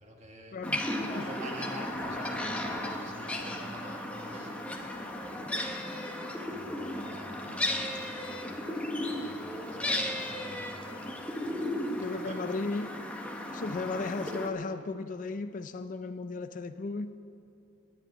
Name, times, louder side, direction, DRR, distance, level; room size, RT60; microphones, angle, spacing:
voice 1, 0.0-0.6 1.1-12.4 13.6-13.8, right 1 dB, 35° right, 1 dB, 1.6 m, -49 dB
voice 2, 0.5-1.1 12.0-12.9 13.5-17.2, left 3 dB, 40° left, 10 dB, 0.4 m, -35 dB
sound 1, 0.6-14.5, left 1 dB, 5° left, 1.0 m, -35 dB
10.5 x 8.8 x 9.9 m, 2.7 s
head